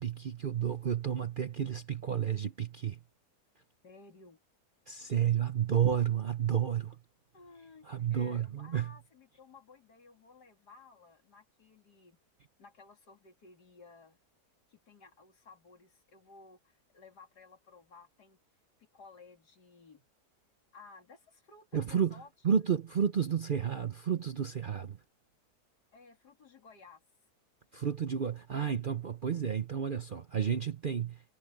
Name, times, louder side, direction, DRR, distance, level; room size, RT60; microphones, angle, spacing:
voice 1, 0.0-3.0 4.9-7.0 7.9-8.9 21.7-22.1 22.4-25.0 27.7-31.2, right 8 dB, 50° right, 0.6 m, -31 dB
voice 2, 3.8-4.4 7.3-12.2 12.6-14.2 14.7-18.4 18.8-20.1 20.7-22.3 25.9-27.0, left 4 dB, 85° left, 3.2 m, -56 dB
omnidirectional pair, 1.7 m